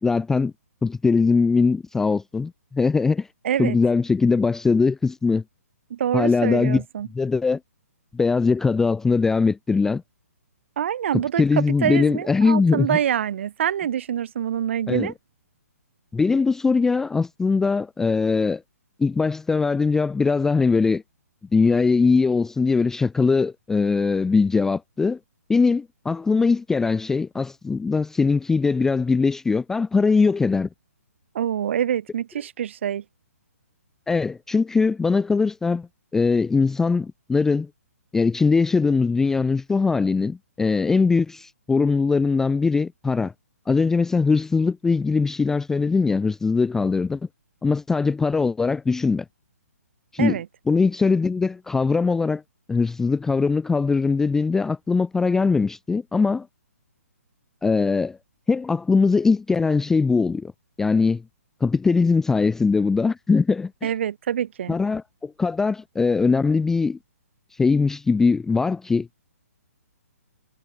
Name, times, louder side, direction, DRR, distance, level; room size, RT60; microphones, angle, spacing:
voice 1, 0.0-0.5 0.8-3.3 3.6-5.4 6.1-6.8 7.1-7.6 8.1-10.0 11.1-13.0 14.9-15.1 16.1-18.6 19.0-21.0 21.5-25.2 25.5-30.7 34.1-35.9 36.1-37.7 38.1-43.3 43.7-47.2 47.6-49.2 50.1-50.4 50.7-52.4 52.7-56.5 57.6-58.2 58.5-60.5 60.8-61.2 61.6-63.9 64.7-67.0 67.6-69.1, left 4 dB, 5° left, 0.3 m, -21 dB
voice 2, 3.4-3.8 5.9-7.1 10.8-11.4 11.8-15.1 31.3-33.0 50.2-50.5 63.8-64.8, right 9 dB, 50° right, 1.9 m, -25 dB
figure-of-eight pair, 130°, 8 cm